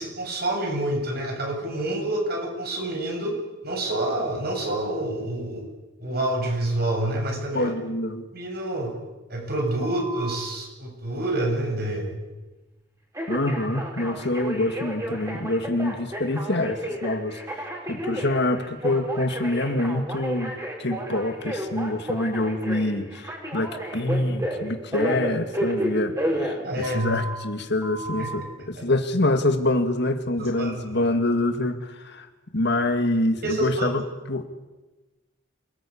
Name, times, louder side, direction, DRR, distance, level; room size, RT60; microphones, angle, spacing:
voice 1, 0.0-3.4 3.6-5.6 6.0-7.7 8.3-8.9 9.3-12.2 26.6-27.2 28.2-28.8 30.4-31.1 33.4-34.0, right 1 dB, 55° right, 3 dB, 7.1 m, -28 dB
voice 2, 7.5-8.3 13.3-32.3 32.5-34.0 34.3-34.5, left 1 dB, 60° left, 7 dB, 2.3 m, -26 dB
Telephone, 9.8-10.4 13.1-27.3 27.8-28.3, right 1 dB, 15° right, 6.2 m, -31 dB
28.0 x 20.0 x 8.8 m, 1.1 s
head